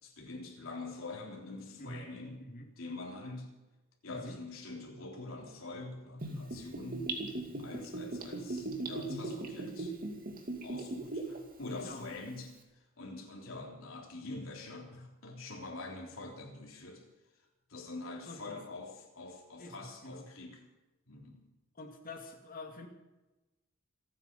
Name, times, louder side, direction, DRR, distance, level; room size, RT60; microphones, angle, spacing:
voice 1, 0.0-2.4 2.8-3.5 4.0-7.1 7.6-10.0 10.6-12.5 13.0-17.0 17.7-20.6 21.1-21.4, left 3 dB, 75° left, 0 dB, 3.5 m, -45 dB
voice 2, 4.1-4.4 11.8-12.1 18.3-18.6 19.6-20.3 21.8-22.9, left 2 dB, 45° left, 3 dB, 2.4 m, -46 dB
Gurgling / Bathtub (filling or washing), 6.2-11.4 11.7-11.8, right 2 dB, 45° right, 2.4 m, -38 dB
27.5 x 9.8 x 5.4 m, 1.1 s
head